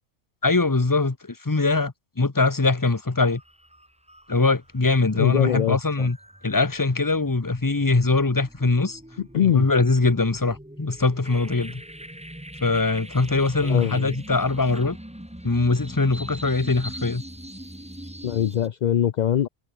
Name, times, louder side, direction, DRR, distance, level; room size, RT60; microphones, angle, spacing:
voice 1, 0.4-3.4 4.3-6.2 6.4-9.0 9.4-11.8 12.6-15.0 15.4-17.2, left 3 dB, 20° left, 1.0 m, -22 dB
sound 1, 2.6-2.8 3.2-18.7, equal, 5° right, 1.9 m, -42 dB
voice 2, 5.1-6.1 9.3-9.7 13.6-14.1 18.2-19.5, left 10 dB, 55° left, 0.5 m, -23 dB
omnidirectional pair, 1.2 m